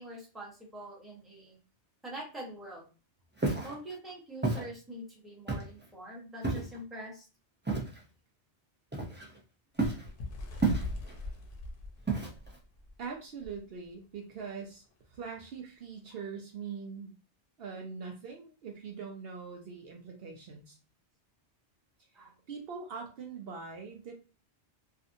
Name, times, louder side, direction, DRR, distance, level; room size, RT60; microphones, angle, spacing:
voice 1, 0.0-1.6 2.0-2.8 3.6-7.3 16.1-16.2 22.1-22.3, right 1 dB, ahead, -4 dB, 0.8 m, -44 dB
Walk footsteps, 3.4-3.7 4.4-4.7 5.5-5.8 6.4-6.8 7.7-8.0 8.9-9.4 9.8-10.1 10.6-11.1 12.1-12.6, right 3 dB, 15° right, 0.3 m, -31 dB
Bird, 9.8-13.0 13.4-13.6 13.9-14.1 14.9-15.0, left 2 dB, 55° left, 0.8 m, -40 dB
voice 2, 13.0-14.8 15.1-17.1 17.6-20.8 22.5-24.1, right 5 dB, 65° right, 2 dB, 0.8 m, -42 dB
2.6 x 2.4 x 2.6 m, 0.33 s
omnidirectional pair, 1.1 m